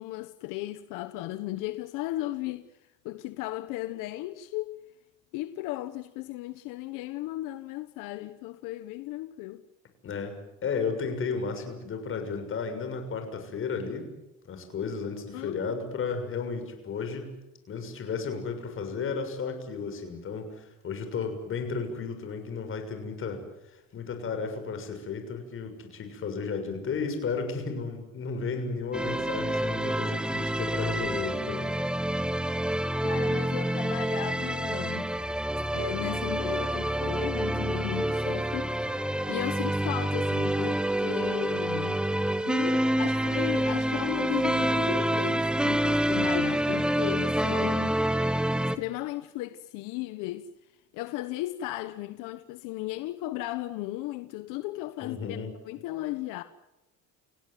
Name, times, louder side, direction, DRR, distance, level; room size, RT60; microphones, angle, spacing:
voice 1, 0.0-2.7 3.0-4.8 5.3-9.6 15.3-15.7 33.0-35.1 35.7-42.1 42.5-48.0 48.7-50.5 50.9-55.4 55.7-56.4, left 16 dB, 85° left, 1.2 m, -35 dB
voice 2, 10.0-14.1 14.5-17.3 17.7-23.4 23.7-31.7 55.0-55.5, left 5 dB, 40° left, 6.6 m, -33 dB
sound 1, 28.9-48.8, right 1 dB, 5° right, 1.1 m, -27 dB
29.0 x 17.5 x 9.4 m
cardioid pair, 130°, 31 cm